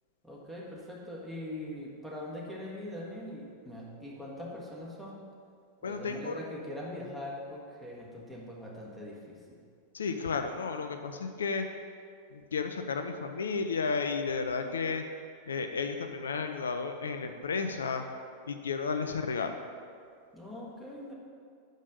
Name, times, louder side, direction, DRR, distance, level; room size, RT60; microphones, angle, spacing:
voice 1, 0.2-5.2 5.8-9.6 20.3-21.1, left 1 dB, 5° right, -4 dB, 1.7 m, -42 dB
voice 2, 5.8-6.3 9.9-11.7 12.3-15.0 15.5-18.0 18.5-19.5, left 5 dB, 70° left, 7 dB, 0.4 m, -32 dB
6.3 x 5.2 x 6.8 m, 2.2 s
figure-of-eight pair, 90°, 0 cm